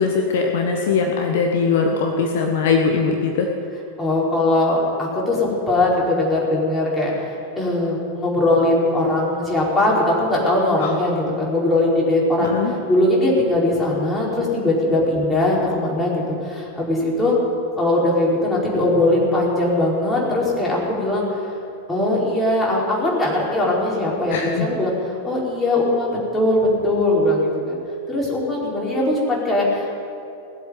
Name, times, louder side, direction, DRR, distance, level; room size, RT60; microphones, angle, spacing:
voice 1, 0.0-3.5 10.8-10.9 12.4-12.7 24.3-24.7, left 5 dB, 55° left, 2 dB, 1.3 m, -20 dB
voice 2, 4.0-12.5 12.9-17.4 17.8-21.2 21.9-24.9 25.2-27.8 28.1-30.1, left 1 dB, 15° left, -5 dB, 5.0 m, -20 dB
19.0 x 8.1 x 9.3 m, 2.7 s
figure-of-eight pair, 90°, 0 cm